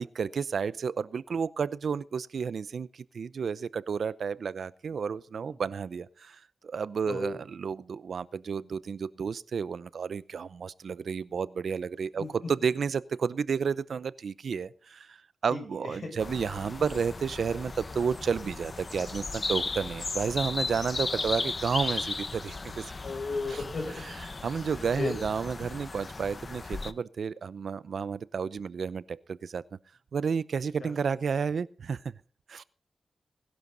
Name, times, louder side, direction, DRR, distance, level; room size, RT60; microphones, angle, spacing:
voice 1, 0.0-22.9 23.5-23.6 24.4-29.6 30.1-32.1 32.5-32.6, right 6 dB, 75° right, 0.6 m, -31 dB
voice 2, 7.0-7.4 12.2-12.3 15.5-16.1 21.1-21.3 23.0-24.1 25.0-25.2 30.8-30.9, left 3 dB, 60° left, 7.5 m, -35 dB
sound 1, 16.2-26.9, left 3 dB, 40° left, 1.0 m, -36 dB
21.0 x 11.5 x 4.0 m
cardioid pair, 80°, 0 cm